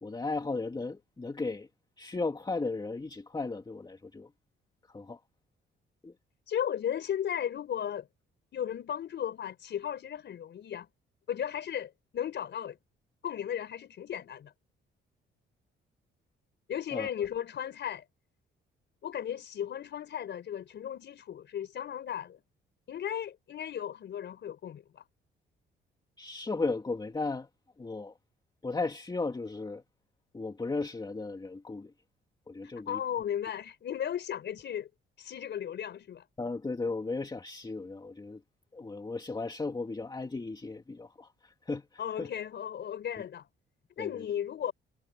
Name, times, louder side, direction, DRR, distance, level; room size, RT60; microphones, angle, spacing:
voice 1, 0.0-1.7 2.0-4.3 4.9-5.2 6.0-6.1 16.9-17.1 26.2-27.5 27.8-28.1 28.6-29.8 30.3-31.9 32.5-33.0 36.4-38.4 38.7-42.3 44.0-44.3, left 3 dB, 20° left, 2.4 m, -35 dB
voice 2, 6.5-8.1 8.5-10.9 11.3-12.8 13.2-14.5 16.7-18.0 19.0-22.4 22.9-25.0 32.9-34.9 35.2-36.2 42.0-43.5 44.0-44.7, left 9 dB, 65° left, 4.6 m, -35 dB
cardioid pair, 90°, 20 cm